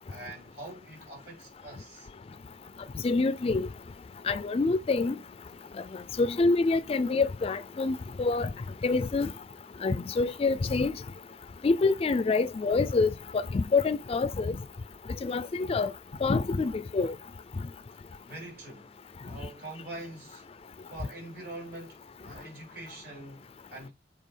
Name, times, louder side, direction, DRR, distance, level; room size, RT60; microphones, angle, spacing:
voice 1, 0.1-2.1 17.9-19.0 19.2-20.5 20.9-23.9, right 2 dB, 60° right, 4.6 m, -44 dB
voice 2, 3.0-3.7 4.3-5.2 6.2-8.5 8.8-9.3 9.8-10.9 11.6-14.6 15.2-15.9 16.2-17.1, left 3 dB, 35° left, 0.3 m, -26 dB
7.4 x 4.3 x 3.3 m
head